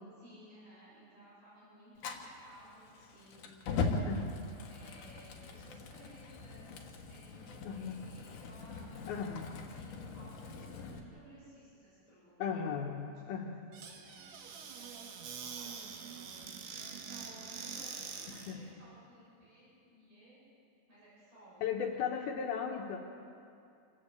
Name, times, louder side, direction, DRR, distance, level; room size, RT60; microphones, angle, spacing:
voice 1, 0.2-4.1 4.7-12.4 13.0-20.4 20.9-21.9, equal, 65° right, -9 dB, 8.6 m, -58 dB
Fire, 2.0-11.0, left 3 dB, 60° left, 2.6 m, -40 dB
voice 2, 7.6-8.0 9.1-9.5 12.4-13.6 18.5-18.6 21.6-23.0, left 7 dB, 75° left, 1 dB, 3.0 m, -36 dB
Squeak / Cupboard open or close, 13.7-18.6, right 6 dB, 90° right, 3.5 m, -45 dB
28.0 x 12.0 x 8.3 m, 2.5 s
omnidirectional pair, 4.6 m